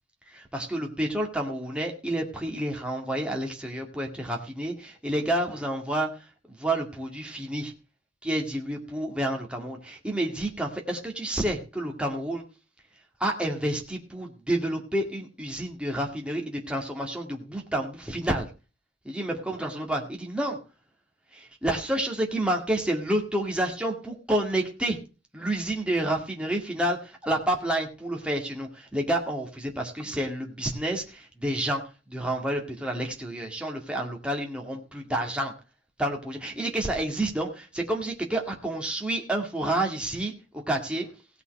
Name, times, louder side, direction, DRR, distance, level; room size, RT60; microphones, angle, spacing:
voice 1, 0.3-7.7 8.2-12.4 13.2-18.5 19.0-20.6 21.3-25.0 25.3-31.8 32.1-35.5 36.0-41.1, right 1 dB, 5° right, 1 dB, 2.1 m, -29 dB
17.0 x 5.7 x 6.5 m, 0.32 s
head